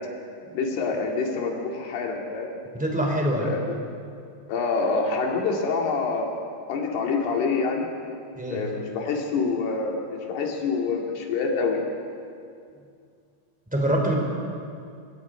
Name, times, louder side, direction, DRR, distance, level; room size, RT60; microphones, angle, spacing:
voice 1, 0.5-2.6 3.4-3.8 4.5-6.3 6.7-7.9 8.5-11.8, left 4 dB, 70° left, 0 dB, 4.2 m, -26 dB
voice 2, 2.7-3.6 8.3-8.6 13.7-14.1, right 1 dB, ahead, 1 dB, 2.4 m, -25 dB
26.0 x 20.0 x 5.0 m, 2.3 s
omnidirectional pair, 5.0 m